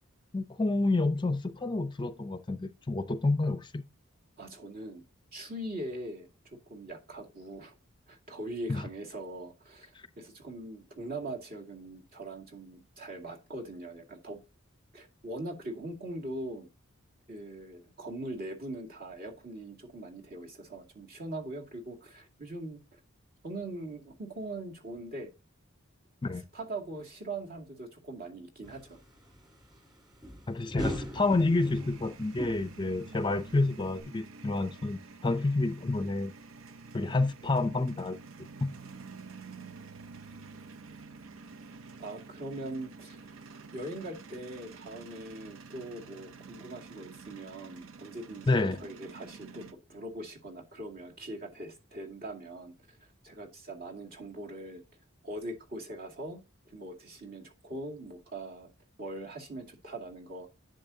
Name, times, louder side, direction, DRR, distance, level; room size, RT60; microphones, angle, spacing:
voice 1, 0.3-3.8 8.7-8.8 26.2-26.4 30.5-36.3 36.9-38.2 38.6-38.7 48.5-48.8, left 2 dB, 25° left, 0.5 m, -29 dB
voice 2, 4.4-5.0 5.3-6.3 6.7-7.7 8.1-14.4 14.9-16.7 17.3-23.0 23.4-25.3 26.5-29.0 42.0-43.4 43.7-53.0 53.2-54.8 55.2-56.4 56.7-58.7 59.0-60.5, right 1 dB, 50° right, 2.2 m, -41 dB
sound 1, 28.6-34.0, equal, 20° right, 3.6 m, -41 dB
sound 2, 31.1-49.7, right 4 dB, 80° right, 0.7 m, -49 dB
10.5 x 7.3 x 2.8 m
head